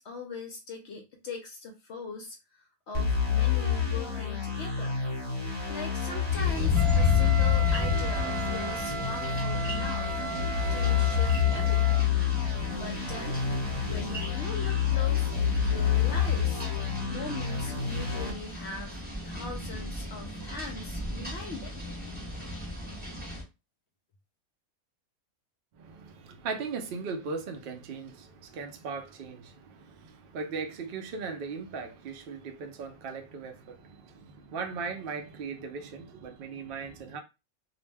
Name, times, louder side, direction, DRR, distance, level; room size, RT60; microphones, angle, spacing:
voice 1, 0.0-2.4 2.9-5.0 5.7-10.2 10.7-12.2 12.8-13.4 13.9-16.7 17.1-21.8, left 3 dB, 65° left, 0.7 m, -41 dB
sound 1, 2.9-18.3, left 8 dB, 30° left, 1.1 m, -28 dB
sound 2, 6.3-23.4, left 1 dB, 10° right, 0.6 m, -36 dB
Wind instrument woodwind instrument, 6.7-12.1, right 4 dB, 85° right, 1.1 m, -36 dB
voice 2, 25.8-37.2, right 5 dB, 65° right, 0.5 m, -38 dB
2.5 x 2.0 x 3.3 m
omnidirectional pair, 1.5 m